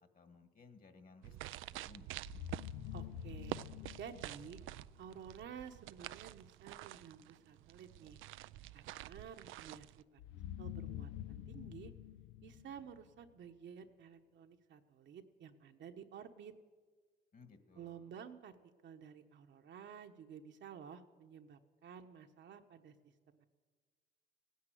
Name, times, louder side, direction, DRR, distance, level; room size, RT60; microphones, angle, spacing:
voice 1, 0.0-1.4 1.7-2.2 17.3-18.1, left 4 dB, 45° left, 8 dB, 1.9 m, -60 dB
sound 1, 1.2-10.0, right 15 dB, 90° right, 0.4 m, -48 dB
sound 2, 2.2-5.2 10.2-13.4, left 12 dB, 90° left, 0.5 m, -47 dB
voice 2, 2.9-3.6 4.0-4.6 5.0-8.2 8.7-10.2 10.6-11.9 12.4-16.5 17.7-18.5 18.8-22.9 23.3-23.5, right 7 dB, 65° right, 5 dB, 1.2 m, -52 dB
16.0 x 9.6 x 9.4 m, 1.5 s
cardioid pair, 90°, 20 cm